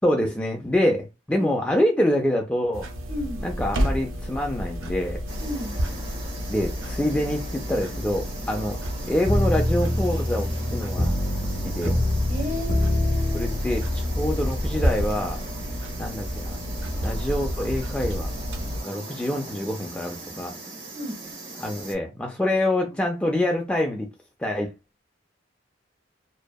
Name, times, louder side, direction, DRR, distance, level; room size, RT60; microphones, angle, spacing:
voice 1, 0.0-2.9 3.4-5.2 6.5-8.8 9.0-11.1 11.6-12.0 13.3-15.4 16.0-16.6 17.0-18.3 18.8-20.5 21.6-24.1 24.4-24.7, left 1 dB, 5° left, 0.3 m, -26 dB
sound 1, 2.7-18.8, equal, 90° right, 0.5 m, -31 dB
voice 2, 3.1-3.4 5.4-5.7 12.3-13.5 20.9-21.2, left 1 dB, 40° right, 1.3 m, -32 dB
sound 2, 5.3-22.0, right 2 dB, 70° right, 1.1 m, -39 dB
sound 3, 9.3-14.8, left 1 dB, 50° left, 0.7 m, -25 dB
2.6 x 2.1 x 2.2 m
head